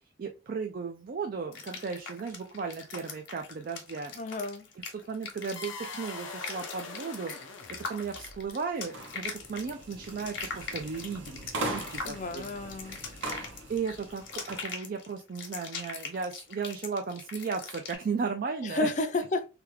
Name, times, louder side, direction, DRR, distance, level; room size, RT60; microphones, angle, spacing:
voice 1, 0.2-4.1 4.9-7.3 7.9-12.5 13.7-18.9, right 5 dB, 45° right, 0.4 m, -35 dB
sound 1, 1.5-18.0, left 5 dB, 65° left, 1.0 m, -41 dB
voice 2, 4.2-4.6 12.0-13.0 18.6-19.5, left 2 dB, 40° left, 0.4 m, -31 dB
sound 2, 5.6-8.7, left 4 dB, 85° left, 0.7 m, -43 dB
sound 3, 8.8-14.7, right 2 dB, 75° right, 0.9 m, -40 dB
3.2 x 2.3 x 3.1 m
head